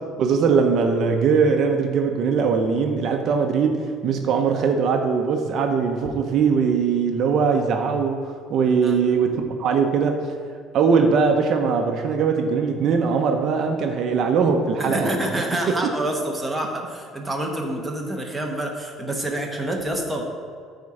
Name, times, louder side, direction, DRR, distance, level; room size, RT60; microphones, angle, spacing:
voice 1, 0.2-10.2 10.7-15.1, right 5 dB, 45° right, 4 dB, 0.7 m, -21 dB
voice 2, 14.8-20.3, right 1 dB, 5° right, -1 dB, 1.0 m, -27 dB
13.0 x 4.3 x 4.9 m, 2.1 s
cardioid pair, 155°, 0 cm